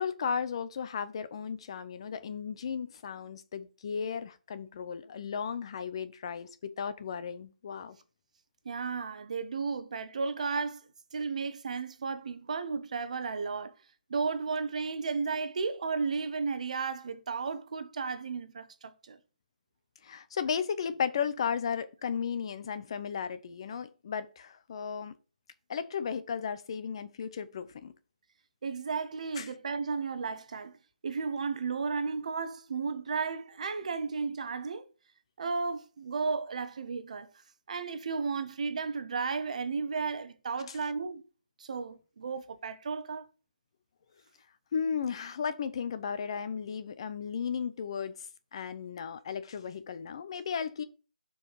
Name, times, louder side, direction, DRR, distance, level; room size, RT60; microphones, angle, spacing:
voice 1, 0.0-8.0 20.0-25.1 25.7-27.9 29.4-29.5 40.7-40.8 44.7-48.1 48.5-50.8, left 7 dB, 35° left, 0.7 m, -35 dB
voice 2, 8.6-10.8 11.1-13.7 14.1-19.2 28.6-30.8 31.0-34.8 35.4-37.3 37.7-41.2 41.6-43.2, right 4 dB, 45° right, 1.0 m, -34 dB
6.2 x 4.8 x 4.8 m
figure-of-eight pair, 165°, 5 cm